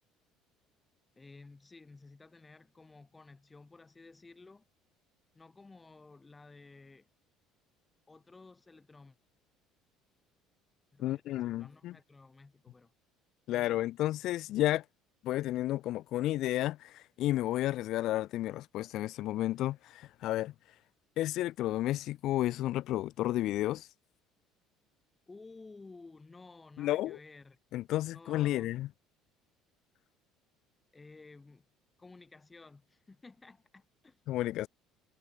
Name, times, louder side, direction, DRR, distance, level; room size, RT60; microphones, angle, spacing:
voice 1, 1.2-4.7 5.3-7.1 8.1-9.2 10.9-12.9 13.5-13.8 25.3-27.6 28.1-28.7 30.9-31.7 32.0-34.2, left 3 dB, 15° left, 1.7 m, -54 dB
voice 2, 11.0-12.0 13.5-14.8 15.2-20.5 21.2-23.9 26.8-27.2 27.7-28.9 34.3-34.7, left 15 dB, 65° left, 0.5 m, -32 dB
cardioid pair, 115°, 0 cm